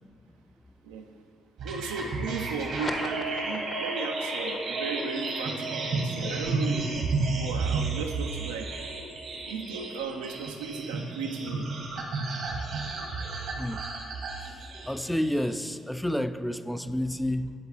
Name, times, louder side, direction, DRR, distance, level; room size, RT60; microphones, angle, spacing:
sound 1, 1.6-15.7, right 3 dB, 70° right, 1.1 m, -32 dB
voice 1, 1.6-7.0 7.4-8.7 9.4-11.7, right 5 dB, 90° right, 3 dB, 0.4 m, -35 dB
sound 2, 2.5-9.4, left 2 dB, 35° left, 0.7 m, -41 dB
voice 2, 14.4-17.5, left 1 dB, 5° left, 11 dB, 0.3 m, -30 dB
10.0 x 3.9 x 2.8 m, 2.3 s
hypercardioid pair, 50°, 0 cm